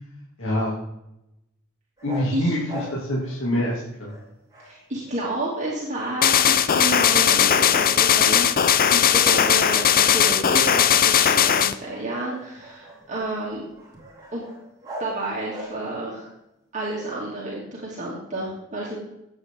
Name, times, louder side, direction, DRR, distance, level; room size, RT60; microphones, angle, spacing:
voice 1, 0.4-0.7 2.0-4.1, equal, 65° left, -5 dB, 2.9 m, -25 dB
sound 1, 2.0-3.7 4.0-5.6 5.9-6.6 6.9-8.1 8.6-8.7 9.3-16.1, equal, 20° right, 4.6 m, -43 dB
voice 2, 4.6-13.6 14.3-14.4 15.0-16.3 16.7-19.0, right 1 dB, 35° right, -5 dB, 3.1 m, -30 dB
sound 2, 6.2-11.7, left 9 dB, 45° left, 0.6 m, -18 dB
16.0 x 8.7 x 3.9 m, 0.87 s
head